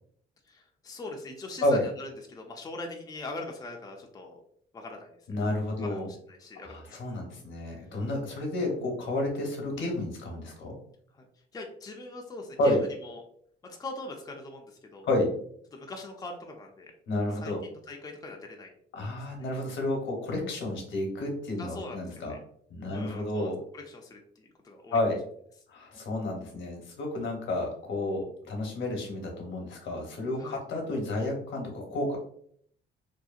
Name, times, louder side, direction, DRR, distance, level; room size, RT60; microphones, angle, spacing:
voice 1, 0.4-4.4 4.7-5.2 5.8-7.2 11.1-11.3 11.5-13.2 13.6-15.1 15.7-16.9 17.3-18.7 19.4-19.5 21.6-22.4 22.9-25.0 30.4-30.6, left 2 dB, 20° left, 1 dB, 0.4 m, -42 dB
voice 2, 5.3-6.1 6.7-10.8 12.6-12.8 15.0-15.3 17.1-17.6 18.9-22.3 22.7-23.6 24.9-25.2 25.7-32.2, left 1 dB, 75° left, 1 dB, 0.9 m, -30 dB
2.7 x 2.2 x 2.4 m, 0.64 s
cardioid pair, 90°, 20 cm